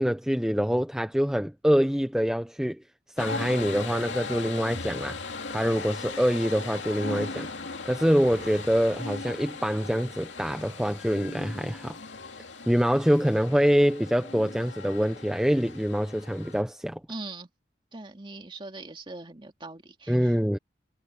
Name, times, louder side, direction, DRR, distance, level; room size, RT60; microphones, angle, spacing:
voice 1, 0.0-2.8 3.2-5.2 5.5-7.5 7.8-12.0 12.7-17.0 20.1-20.6, equal, 5° right, 0.6 m, -25 dB
sound 1, 3.2-16.6, left 4 dB, 85° left, 2.5 m, -38 dB
Explosion, 8.2-10.1, right 2 dB, 80° right, 5.7 m, -50 dB
voice 2, 17.1-17.5 17.9-20.4, right 2 dB, 25° right, 2.3 m, -41 dB
head